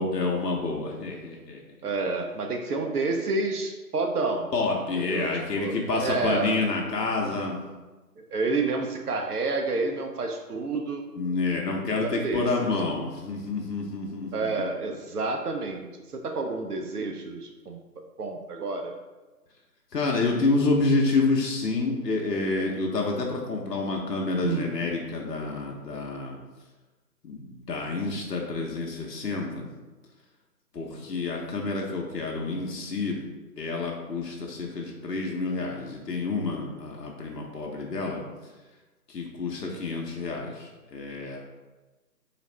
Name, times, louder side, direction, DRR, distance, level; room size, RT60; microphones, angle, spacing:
voice 1, 0.0-1.6 4.5-7.6 11.2-14.7 19.9-26.4 27.2-29.7 30.7-33.2 33.6-38.2 39.1-41.4, left 3 dB, 75° left, 0 dB, 0.8 m, -28 dB
voice 2, 1.8-4.5 5.0-5.3 5.6-6.7 7.3-7.4 8.3-11.0 12.0-12.5 14.3-15.8 16.1-17.8 18.2-18.9 24.4-24.9, right 3 dB, 70° right, 3 dB, 0.6 m, -29 dB
4.1 x 2.4 x 3.2 m, 1.2 s
figure-of-eight pair, 160°, 49 cm